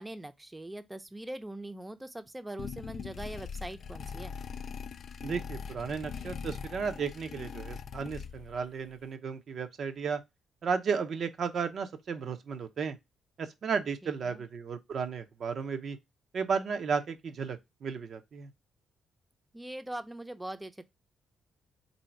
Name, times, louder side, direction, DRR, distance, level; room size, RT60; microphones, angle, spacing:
voice 1, 0.0-4.4 14.0-14.4 19.5-20.9, right 1 dB, 15° right, 0.6 m, -42 dB
sound 1, 2.6-8.7, left 6 dB, 60° left, 0.4 m, -41 dB
voice 2, 5.2-10.2 10.6-13.0 13.4-16.0 16.3-18.5, right 5 dB, 60° right, 0.7 m, -34 dB
3.8 x 2.7 x 4.3 m
hypercardioid pair, 50°, 0 cm